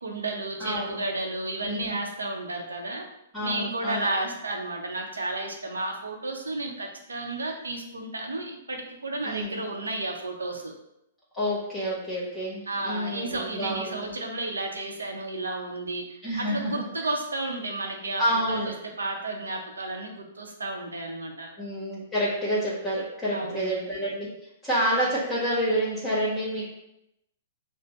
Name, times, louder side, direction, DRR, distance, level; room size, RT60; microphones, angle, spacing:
voice 1, 0.0-3.1 3.4-10.7 12.7-21.5 23.3-23.9, right 2 dB, 80° right, 2 dB, 0.8 m, -32 dB
voice 2, 0.6-1.0 1.6-2.0 3.3-4.1 9.2-9.6 11.3-14.1 16.2-16.9 18.2-18.7 21.6-24.3 24.6-26.7, equal, 5° left, -7 dB, 1.3 m, -28 dB
5.7 x 2.1 x 3.0 m, 0.84 s
figure-of-eight pair, 115°, 0 cm